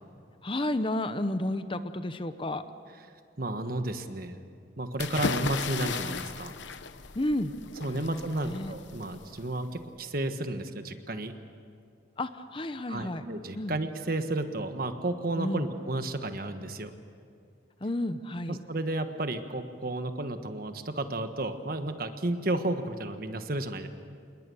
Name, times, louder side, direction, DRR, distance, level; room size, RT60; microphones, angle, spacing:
voice 1, 0.4-2.6 7.1-7.5 7.9-8.7 12.2-13.2 13.5-13.7 15.4-15.7 17.8-18.6, left 1 dB, 30° left, 11 dB, 0.8 m, -31 dB
voice 2, 3.4-4.4 4.8-6.5 7.8-11.3 12.9-16.9 18.5-23.9, right 2 dB, 50° right, 8 dB, 1.4 m, -32 dB
sound 1, 5.0-9.8, left 5 dB, 85° left, 0.9 m, -36 dB
27.0 x 20.5 x 7.0 m, 2.3 s
head